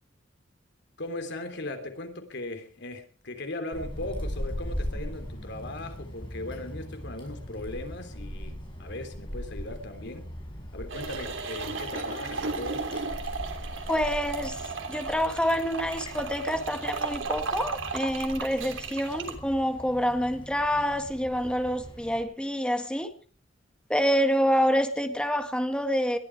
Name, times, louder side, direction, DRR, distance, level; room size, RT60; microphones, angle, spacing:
voice 1, 1.0-8.5 8.8-10.3 10.7-12.9, left 2 dB, 65° left, 3.2 m, -38 dB
Wind, 3.7-22.2, equal, 25° left, 6.6 m, -40 dB
sound 1, 10.9-19.3, right 4 dB, 80° right, 3.3 m, -35 dB
voice 2, 13.9-14.6 14.9-23.1 23.9-26.2, equal, 5° left, 1.8 m, -27 dB
21.0 x 13.5 x 4.8 m
head